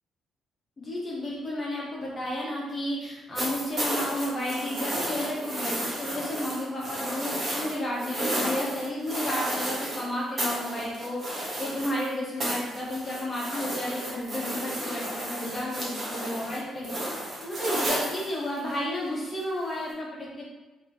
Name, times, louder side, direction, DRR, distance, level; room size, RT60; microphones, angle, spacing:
voice 1, 0.8-20.4, left 1 dB, 30° left, -5 dB, 1.2 m, -32 dB
sound 1, 3.3-10.0 10.4-12.1 12.4-18.7 19.9-20.0, right 1 dB, 40° right, 1.1 m, -32 dB
sound 2, 13.7-14.7 17.4-18.0, right 2 dB, 55° right, 0.9 m, -41 dB
3.0 x 2.9 x 2.7 m, 1.1 s
cardioid pair, 90°, 0 cm